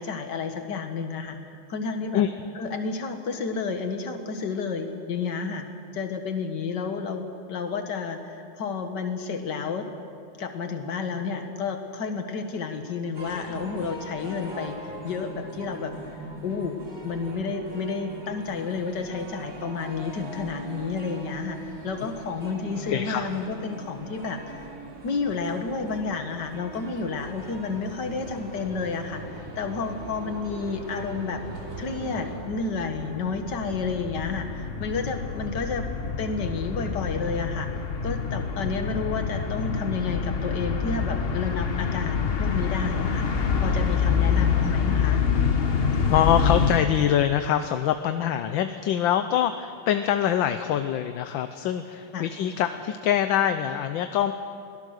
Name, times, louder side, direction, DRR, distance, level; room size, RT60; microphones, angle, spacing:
voice 1, 0.0-2.2 2.6-5.7 5.9-9.9 10.4-14.8 15.0-15.9 16.4-16.8 17.0-24.6 25.0-31.4 31.8-35.9 36.2-45.2 48.2-48.3 52.1-52.3, left 4 dB, 55° left, 6 dB, 2.1 m, -31 dB
sound 1, 13.1-32.4, right 1 dB, 40° right, 3.6 m, -40 dB
voice 2, 22.9-23.3 46.1-54.3, left 10 dB, 75° left, 9 dB, 1.4 m, -24 dB
sound 2, 29.9-30.1 30.4-46.8, left 6 dB, 40° left, 0.9 m, -27 dB
23.5 x 17.5 x 6.6 m, 2.4 s
omnidirectional pair, 2.3 m